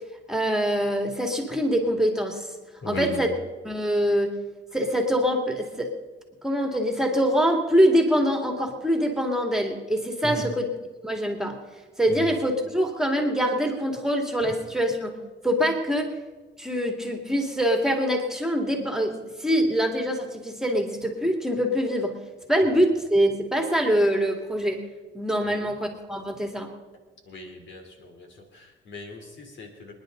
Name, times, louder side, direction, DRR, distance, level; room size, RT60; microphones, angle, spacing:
voice 1, 0.3-2.5 2.9-3.3 3.6-4.3 4.7-5.9 6.4-10.7 11.0-11.6 12.0-15.2 15.4-16.1 16.6-22.1 22.5-24.8 25.1-26.7, equal, 5° right, 3 dB, 2.4 m, -24 dB
voice 2, 2.8-3.2 10.2-10.4 12.1-12.2 25.4-25.6 27.3-28.3 28.5-29.9, left 1 dB, 70° left, 3 dB, 3.2 m, -37 dB
27.0 x 10.5 x 3.9 m, 1.3 s
cardioid pair, 90°, 20 cm